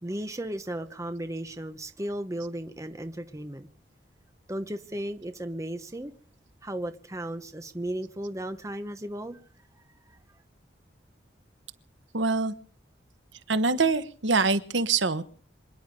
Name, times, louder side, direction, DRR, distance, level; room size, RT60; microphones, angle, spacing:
voice 1, 0.0-3.7 4.5-6.1 6.6-9.4, right 1 dB, 15° right, 1.0 m, -35 dB
voice 2, 12.1-12.5 13.5-15.2, right 4 dB, 85° right, 1.2 m, -24 dB
26.5 x 10.0 x 5.2 m
head